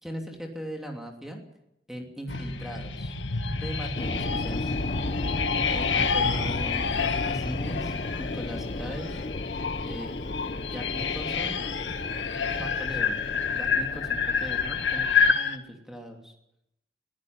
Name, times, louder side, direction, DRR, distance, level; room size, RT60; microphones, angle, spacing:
voice 1, 0.0-1.4 1.9-3.2 3.5-4.8 5.7-6.9 7.2-9.2 9.8-10.1 10.6-11.6 12.6-15.1 15.3-16.3, equal, ahead, 1 dB, 3.0 m, -39 dB
sound 1, 2.3-15.6, left 5 dB, 85° left, 1.7 m, -28 dB
sound 2, 3.9-15.3, left 2 dB, 40° left, 0.7 m, -35 dB
22.5 x 15.0 x 9.5 m, 0.81 s
head